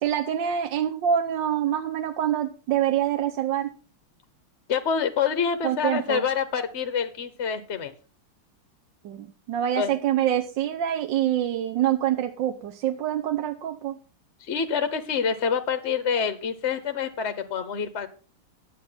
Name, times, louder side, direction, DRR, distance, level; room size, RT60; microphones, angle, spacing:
voice 1, 0.0-3.7 5.6-6.2 9.0-14.0, right 10 dB, 65° right, 5 dB, 1.4 m, -26 dB
voice 2, 4.7-7.9 9.8-9.9 14.4-18.1, left 7 dB, 45° left, 10 dB, 0.9 m, -27 dB
11.0 x 8.3 x 5.7 m, 0.36 s
omnidirectional pair, 2.3 m